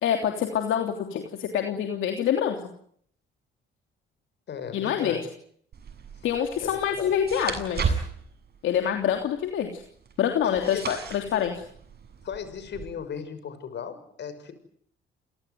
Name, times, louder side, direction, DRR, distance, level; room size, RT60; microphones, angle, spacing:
voice 1, 0.0-2.6 4.7-5.2 6.2-8.0 8.6-9.8 10.2-11.6, left 9 dB, 80° left, 4 dB, 3.2 m, -26 dB
voice 2, 4.5-5.2 6.6-7.1 10.4-10.8 12.2-14.5, left 7 dB, 60° left, 12 dB, 6.3 m, -36 dB
sound 1, 5.7-12.9, right 5 dB, 55° right, 7.5 m, -36 dB
29.5 x 18.5 x 9.5 m, 0.65 s
cardioid pair, 90°, 20 cm